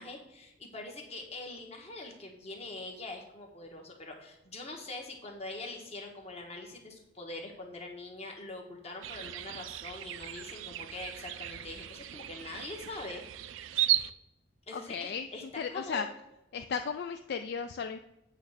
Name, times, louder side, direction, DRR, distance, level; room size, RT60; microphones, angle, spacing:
voice 1, 0.0-13.2 14.7-16.1, left 2 dB, 35° left, 2 dB, 1.2 m, -43 dB
sound 1, 9.0-14.1, right 13 dB, 75° right, 0.4 m, -35 dB
voice 2, 14.7-15.3 15.6-16.1 16.5-18.0, left 6 dB, 55° left, 7 dB, 0.3 m, -35 dB
8.4 x 3.2 x 6.4 m, 0.91 s
head